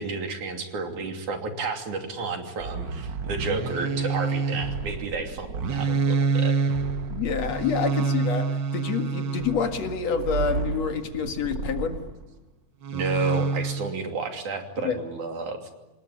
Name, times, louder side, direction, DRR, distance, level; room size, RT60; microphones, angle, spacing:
voice 1, 0.0-6.5 12.9-15.7, right 3 dB, 50° right, 4 dB, 4.1 m, -31 dB
sound 1, 2.6-12.2 12.8-13.9, right 4 dB, 85° right, 0.9 m, -28 dB
voice 2, 7.1-12.0 14.8-15.0, left 6 dB, 50° left, 6 dB, 2.5 m, -28 dB
27.5 x 20.0 x 10.0 m, 1.1 s
omnidirectional pair, 4.5 m